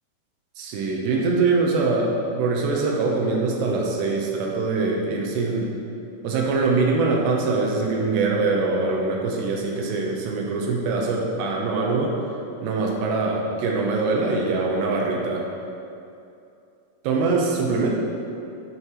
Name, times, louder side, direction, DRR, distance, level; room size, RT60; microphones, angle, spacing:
voice 1, 0.6-5.8 6.2-12.1 12.6-15.5 17.0-18.0, right 3 dB, 85° right, -1 dB, 3.1 m, -23 dB
11.5 x 5.8 x 3.1 m, 2.6 s
omnidirectional pair, 4.8 m